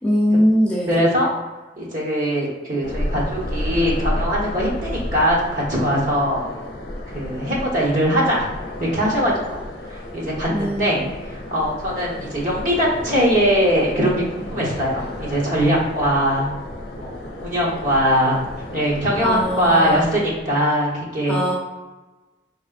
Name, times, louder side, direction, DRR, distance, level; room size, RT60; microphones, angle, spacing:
voice 1, 0.0-0.9 10.5-11.0 19.2-20.0 21.3-21.5, equal, 5° left, -7 dB, 0.8 m, -20 dB
voice 2, 0.9-1.3 1.8-6.7 7.1-8.5 8.8-9.6 9.9-16.5 16.9-18.4 18.7-21.4, equal, 45° right, -5 dB, 1.1 m, -21 dB
sound 1, 2.8-20.7, left 1 dB, 65° left, 0.7 m, -32 dB
4.3 x 3.3 x 2.5 m, 1.1 s
head